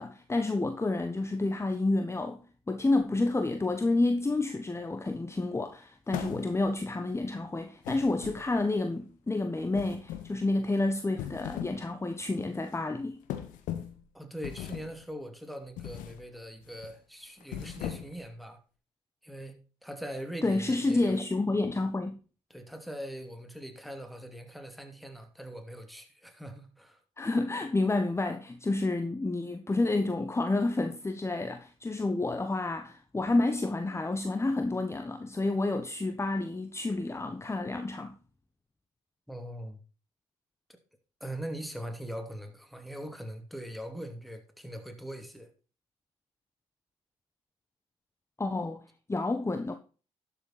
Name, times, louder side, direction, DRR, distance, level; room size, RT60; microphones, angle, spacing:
voice 1, 0.0-13.2 20.4-22.2 27.2-38.2 48.4-48.8 49.1-49.8, left 2 dB, 20° left, 1.2 m, -29 dB
sound 1, 6.1-6.8 7.8-8.8 9.7-10.4 11.0-11.8 12.2-12.4 13.3-14.0 14.4-15.0 15.8-16.2 16.6-16.9 17.4-18.3, left 11 dB, 75° left, 1.6 m, -39 dB
voice 2, 14.1-18.6 19.2-21.2 22.5-27.0 39.3-39.8 41.2-45.5, equal, ahead, 2.7 m, -41 dB
12.0 x 7.2 x 4.1 m
hypercardioid pair, 50°, 14 cm